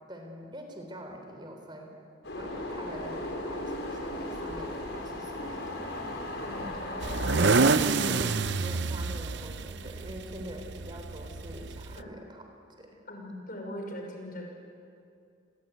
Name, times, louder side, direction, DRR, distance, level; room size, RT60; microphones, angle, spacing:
voice 1, 0.1-1.9 2.4-5.9 7.8-12.5 12.8-13.0, equal, 25° right, 3 dB, 3.8 m, -44 dB
sound 1, 2.2-7.8, left 1 dB, 75° left, 6.0 m, -36 dB
voice 2, 6.4-7.1 12.0-12.1 13.1-14.5, equal, 50° left, 2 dB, 5.9 m, -40 dB
sound 2, 7.0-12.0, right 4 dB, 65° right, 0.7 m, -27 dB
29.0 x 21.5 x 9.4 m, 2.5 s
head